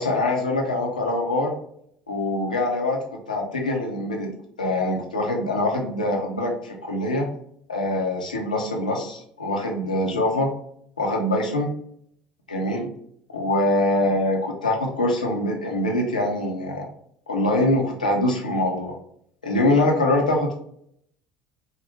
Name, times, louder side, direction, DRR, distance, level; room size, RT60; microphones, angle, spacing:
voice 1, 0.0-1.5 2.1-3.0 3.3-4.3 4.6-7.3 7.7-10.5 11.0-11.7 12.5-12.9 13.3-16.9 17.3-19.0 19.4-20.5, left 1 dB, 80° left, 0 dB, 0.7 m, -23 dB
3.6 x 2.1 x 4.0 m, 0.69 s
figure-of-eight pair, 60°, 4 cm